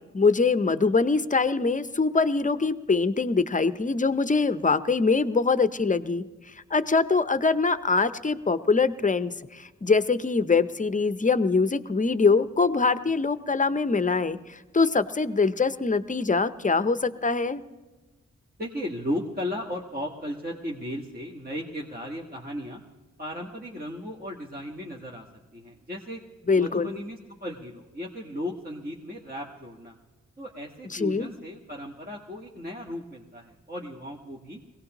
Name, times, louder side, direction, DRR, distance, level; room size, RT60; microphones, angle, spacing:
voice 1, 0.0-6.2 6.7-17.6 26.5-26.9 30.9-31.3, left 4 dB, 25° left, 13 dB, 0.6 m, -23 dB
voice 2, 18.6-22.8 23.2-25.3 25.5-26.2 26.5-30.0 30.4-34.6, equal, 30° right, -2 dB, 1.5 m, -35 dB
22.0 x 17.5 x 3.0 m, 1.2 s
cardioid pair, 45°, 29 cm